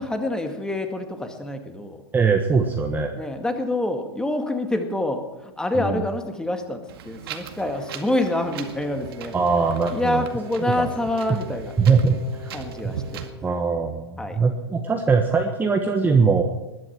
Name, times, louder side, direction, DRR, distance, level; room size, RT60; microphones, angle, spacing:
voice 1, 0.0-2.0 3.2-9.3 9.9-11.7 12.5-13.3 14.2-14.4, left 1 dB, 5° left, 6 dB, 2.0 m, -27 dB
voice 2, 2.1-3.2 5.7-6.0 9.3-10.3 10.7-10.9 11.3-11.4 11.8-12.5 12.8-12.9 13.4-16.4, right 5 dB, 15° right, 4 dB, 1.3 m, -21 dB
Wind, 6.9-13.3, right 9 dB, 60° right, 2.0 m, -39 dB
Wind instrument woodwind instrument, 7.7-13.4, left 3 dB, 75° left, 2.3 m, -43 dB
21.0 x 11.0 x 6.0 m, 1.0 s
hypercardioid pair, 110°, 14 cm